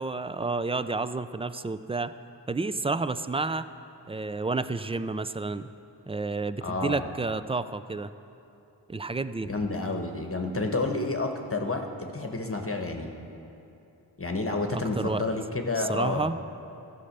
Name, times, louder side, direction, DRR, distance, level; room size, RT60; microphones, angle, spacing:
voice 1, 0.0-2.1 2.5-3.7 4.1-5.7 6.1-8.1 8.9-9.5 14.7-15.2 15.8-16.4, right 3 dB, 15° right, 13 dB, 0.3 m, -30 dB
voice 2, 6.6-7.1 9.4-13.1 14.2-16.3, left 3 dB, 30° left, 4 dB, 1.2 m, -30 dB
13.5 x 5.6 x 6.7 m, 2.8 s
cardioid pair, 45°, 45 cm